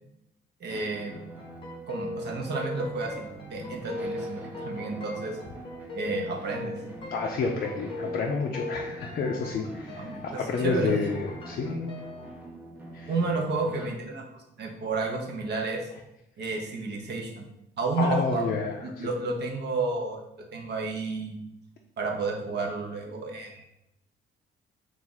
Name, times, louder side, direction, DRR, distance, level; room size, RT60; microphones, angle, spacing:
voice 1, 0.6-1.2 1.9-3.2 3.5-5.4 5.9-6.7 9.9-11.1 13.1-15.9 16.4-17.4 17.8-18.5 18.8-20.2 20.5-21.3 22.0-23.6, right 3 dB, 60° right, 1 dB, 0.7 m, -31 dB
sound 1, 0.7-13.9, right 2 dB, 10° right, 0.6 m, -44 dB
sound 2, 1.4-12.4, left 2 dB, 25° left, 0.7 m, -40 dB
voice 2, 7.1-12.0 12.9-13.1 18.0-19.1, left 4 dB, 50° left, 1 dB, 0.4 m, -30 dB
2.9 x 2.4 x 3.9 m, 0.85 s
cardioid pair, 90°, 20 cm